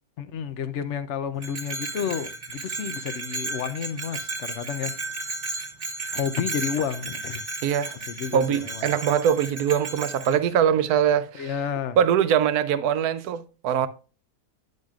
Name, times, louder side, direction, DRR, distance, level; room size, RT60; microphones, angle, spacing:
voice 1, 0.2-4.9 6.1-7.5 8.1-8.8 11.3-12.0, left 7 dB, 60° left, 0.8 m, -31 dB
Bell, 1.4-10.4, right 3 dB, 35° right, 1.6 m, -34 dB
voice 2, 7.6-8.0 8.3-11.5 12.0-13.9, right 8 dB, 75° right, 1.1 m, -22 dB
10.5 x 6.4 x 2.4 m
omnidirectional pair, 1.7 m